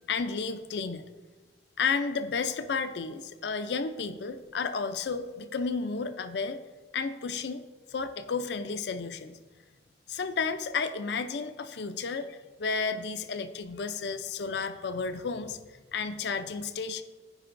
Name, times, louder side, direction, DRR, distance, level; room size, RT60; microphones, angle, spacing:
voice 1, 0.1-1.1 1.8-6.6 6.9-7.6 7.9-9.4 10.1-15.6 15.9-17.0, left 5 dB, 65° left, 10 dB, 0.5 m, -32 dB
14.5 x 5.1 x 2.5 m, 1.3 s
head